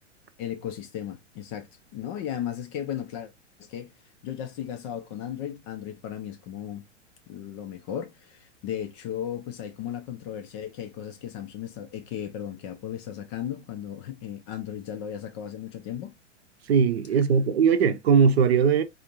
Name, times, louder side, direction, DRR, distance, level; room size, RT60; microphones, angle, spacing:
voice 1, 0.4-3.3 3.6-3.9 4.2-6.8 7.3-16.1, left 10 dB, 25° left, 0.4 m, -35 dB
voice 2, 16.7-18.8, right 6 dB, 55° right, 0.7 m, -20 dB
4.1 x 2.5 x 2.8 m
figure-of-eight pair, 100°, 37 cm